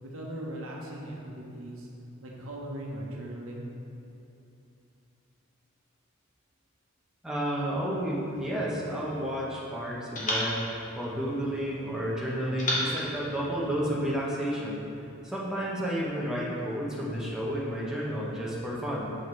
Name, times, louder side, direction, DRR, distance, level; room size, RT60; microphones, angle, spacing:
voice 1, 0.0-1.9 2.2-3.7, right 1 dB, 75° right, -3 dB, 1.0 m, -39 dB
voice 2, 7.2-10.6 10.9-14.9 15.2-19.1, equal, 5° right, -7 dB, 0.8 m, -31 dB
sound 1, 8.3-9.6 10.1-11.8 12.6-14.2, left 1 dB, 35° left, 1.2 m, -35 dB
6.4 x 6.3 x 3.2 m, 2.8 s
head